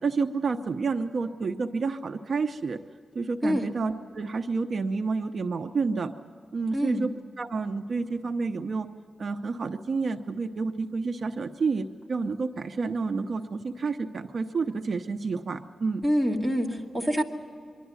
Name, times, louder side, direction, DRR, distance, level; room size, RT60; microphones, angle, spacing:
voice 1, 0.0-2.8 3.1-6.1 6.5-7.1 7.4-8.9 9.2-16.0, right 4 dB, 60° right, 7 dB, 0.7 m, -29 dB
voice 2, 6.7-7.0 16.0-17.2, equal, 5° right, -1 dB, 2.1 m, -26 dB
24.5 x 12.0 x 9.6 m, 2.3 s
wide cardioid pair, 110°, 0 cm